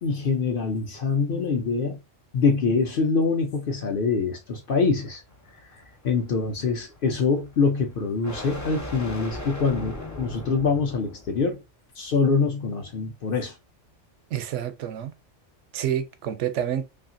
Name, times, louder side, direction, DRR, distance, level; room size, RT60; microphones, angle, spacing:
voice 1, 0.0-2.0 2.3-5.2 6.0-11.6 12.0-13.5, left 4 dB, 55° left, 0.7 m, -24 dB
sound 1, 4.4-11.4, left 1 dB, 20° left, 0.5 m, -39 dB
voice 2, 14.3-15.1 15.7-16.8, right 10 dB, 80° right, 0.9 m, -28 dB
2.8 x 2.5 x 2.5 m
omnidirectional pair, 1.3 m